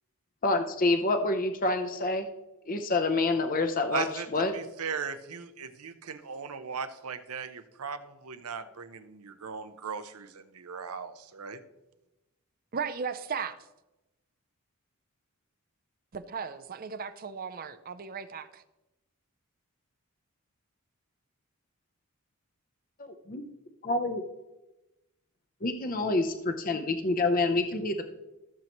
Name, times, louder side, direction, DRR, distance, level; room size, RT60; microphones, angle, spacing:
voice 1, 0.4-2.3 2.7-4.0 4.3-4.5 23.0-23.4 23.8-24.2 25.6-28.0, left 2 dB, 40° left, 7 dB, 0.7 m, -27 dB
voice 2, 3.9-11.6, right 6 dB, 85° right, 10 dB, 0.8 m, -38 dB
voice 3, 12.7-13.6 16.1-18.6, right 6 dB, 40° right, 11 dB, 0.5 m, -36 dB
14.5 x 7.4 x 3.0 m, 0.98 s
head